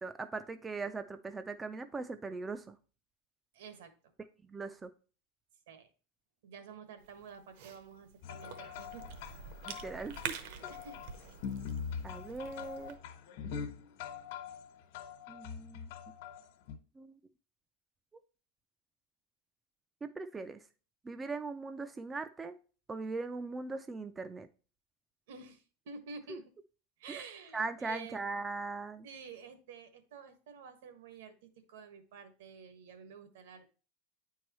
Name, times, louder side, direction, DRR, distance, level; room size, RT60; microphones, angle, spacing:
voice 1, 0.0-2.8 4.4-4.9 9.7-10.4 12.0-13.0 15.3-16.1 17.0-17.1 20.0-20.6 21.0-22.6 22.9-24.5 26.3-26.4 27.1-27.2 27.5-29.1, right 3 dB, 10° right, 9 dB, 0.3 m, -40 dB
voice 2, 3.5-3.9 5.7-5.9 6.4-9.0 9.6-9.7 10.4-11.0 25.3-26.4 27.0-28.2 29.0-33.7, right 6 dB, 80° right, 9 dB, 1.4 m, -50 dB
Cough / Chewing mastication, 7.0-13.0, right 7 dB, 55° right, 0.8 m, -47 dB
sound 1, 8.2-16.8, left 7 dB, 60° left, 1.2 m, -43 dB
9.3 x 4.6 x 3.0 m, 0.36 s
supercardioid pair, 175°, 0 cm